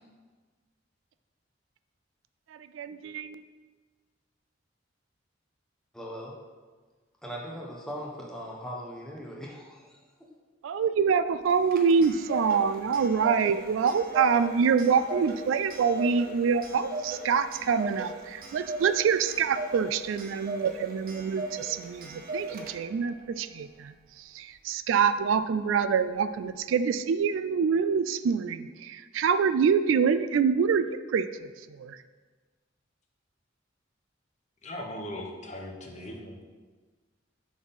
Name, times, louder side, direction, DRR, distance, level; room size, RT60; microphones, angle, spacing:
voice 1, 2.5-3.4 10.6-32.0, right 6 dB, 80° right, 0.3 m, -26 dB
voice 2, 5.9-6.3 7.2-10.0, equal, 5° left, 1.0 m, -39 dB
Clock, 11.5-23.1, right 2 dB, 50° right, 0.8 m, -38 dB
voice 3, 34.6-36.4, left 1 dB, 35° left, 0.9 m, -39 dB
6.0 x 4.1 x 5.4 m
head